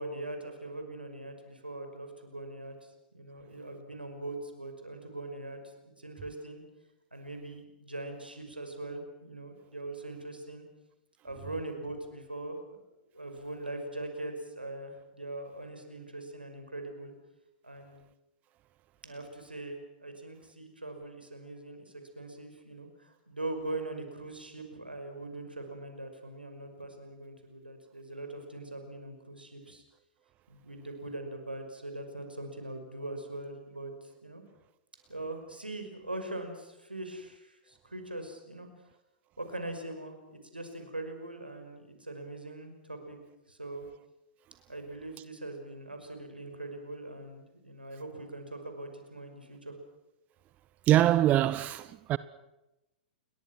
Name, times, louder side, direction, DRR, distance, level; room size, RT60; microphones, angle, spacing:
voice 1, 0.0-2.9 3.1-6.6 7.1-10.6 11.2-12.6 13.1-17.1 17.6-18.0 19.0-29.8 30.5-34.4 35.1-38.9 39.4-43.2 43.5-43.9 44.7-49.8, right 2 dB, 85° right, 5.6 m, -41 dB
voice 2, 50.9-52.2, right 13 dB, 30° right, 0.8 m, -24 dB
29.0 x 22.5 x 6.2 m
figure-of-eight pair, 100°, 5 cm